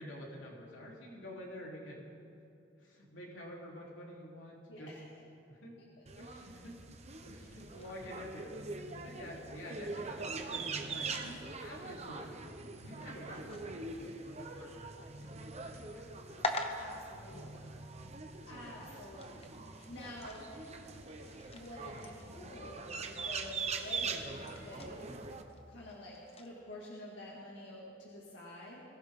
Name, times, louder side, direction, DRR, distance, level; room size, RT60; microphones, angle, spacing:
voice 1, 0.0-2.0 2.8-4.9 5.5-5.8 6.2-6.8 7.2-8.6 8.9-12.3 12.8-15.3 15.6-16.5 17.5-18.4 18.8-18.9 19.7-20.1, equal, 90° left, -3 dB, 3.5 m, -49 dB
voice 2, 4.7-5.0 6.0-6.1 11.1-11.4 16.8-17.7 18.5-19.3 19.9-20.5 21.5-25.0 25.7-28.8, left 1 dB, 70° left, -5 dB, 2.3 m, -48 dB
sound 1, 6.1-25.4, right 4 dB, 35° right, 1.0 m, -43 dB
sound 2, 7.8-26.6, left 2 dB, 30° left, 1.1 m, -48 dB
22.0 x 16.0 x 3.8 m, 2.7 s
head